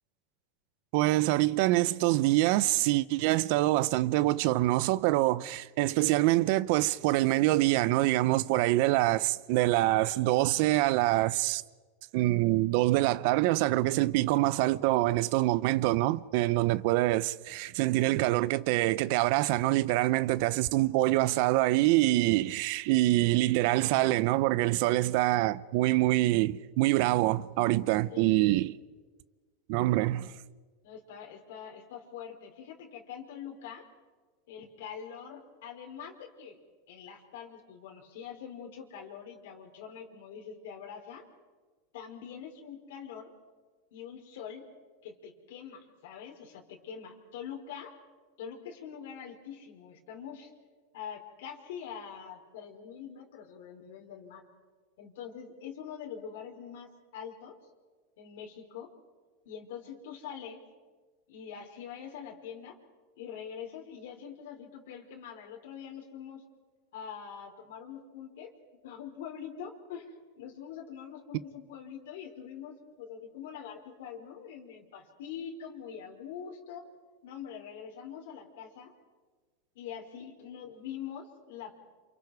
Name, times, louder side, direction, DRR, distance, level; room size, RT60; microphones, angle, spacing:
voice 1, 0.9-11.6 12.1-28.7 29.7-30.3, right 18 dB, 60° right, 0.7 m, -25 dB
voice 2, 28.1-28.6 30.8-33.8 34.5-36.6 36.9-41.2 41.9-43.3 43.9-44.7 45.0-47.9 48.4-50.5 50.9-54.4 55.0-57.5 58.2-58.9 59.4-60.6 61.3-62.8 63.2-66.4 66.9-68.5 68.8-76.8 77.2-78.9 79.8-81.7, left 8 dB, 75° left, 4.2 m, -44 dB
29.0 x 27.5 x 4.8 m
supercardioid pair, 140°, 0 cm